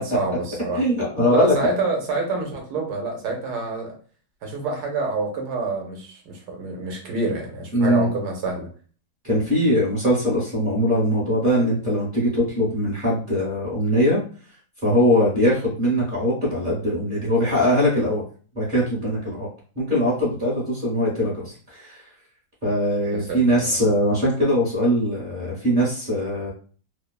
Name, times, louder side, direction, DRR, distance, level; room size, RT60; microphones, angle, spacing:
voice 1, 0.0-0.8 1.3-3.9 4.4-8.7 23.1-23.7, right 3 dB, 75° right, 1 dB, 1.2 m, -27 dB
voice 2, 0.7-1.7 7.7-8.1 9.2-14.2 14.8-18.2 18.5-19.5 19.7-22.0 22.6-26.5, equal, 35° right, -7 dB, 1.0 m, -21 dB
3.0 x 2.1 x 2.2 m, 0.40 s
omnidirectional pair, 1.8 m